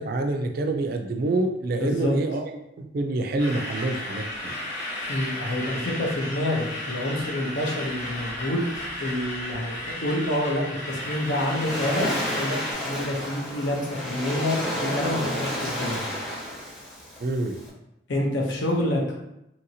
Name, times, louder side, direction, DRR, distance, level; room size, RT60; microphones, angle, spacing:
voice 1, 0.0-2.5 2.8-4.6 17.2-17.6, right 2 dB, 50° right, 5 dB, 0.3 m, -27 dB
voice 2, 1.8-2.2 5.1-16.0 18.1-19.2, left 1 dB, 75° left, 0 dB, 0.7 m, -28 dB
sound 1, 3.4-12.7, left 1 dB, 35° left, 0.9 m, -34 dB
Waves surf, 10.9-17.7, equal, ahead, 0.7 m, -31 dB
2.8 x 2.7 x 2.7 m, 0.83 s
head